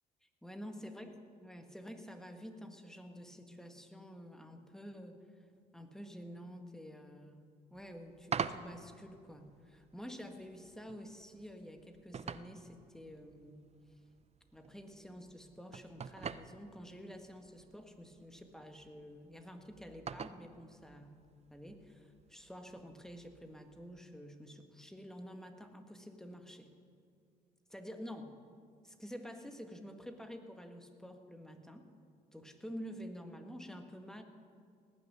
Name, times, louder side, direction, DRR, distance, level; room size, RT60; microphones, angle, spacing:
voice 1, 0.4-5.5 5.7-13.7 14.5-21.2 21.5-26.7 27.7-28.3 28.8-31.9 32.3-34.2, equal, ahead, 5 dB, 1.8 m, -49 dB
sound 1, 7.7-24.1, right 6 dB, 30° right, 0.6 m, -48 dB
18.0 x 6.3 x 9.7 m, 2.2 s
hypercardioid pair, 55°, 20 cm